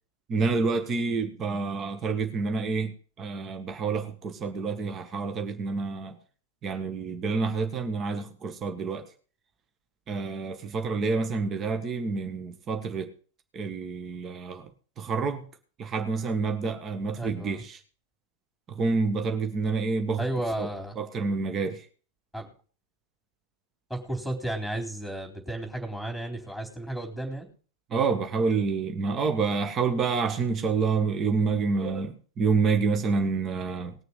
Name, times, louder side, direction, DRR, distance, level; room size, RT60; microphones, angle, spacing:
voice 1, 0.3-2.9 3.2-6.1 6.6-9.0 10.1-13.1 13.5-14.7 15.0-15.4 15.8-17.8 18.7-20.2 20.6-20.7 21.0-21.8 27.9-33.9, right 4 dB, 25° right, 1.7 m, -28 dB
voice 2, 17.2-17.6 20.2-21.0 22.3-22.5 23.9-27.5, right 1 dB, 5° right, 4.0 m, -33 dB
19.5 x 6.6 x 5.7 m
figure-of-eight pair, 90°, 0 cm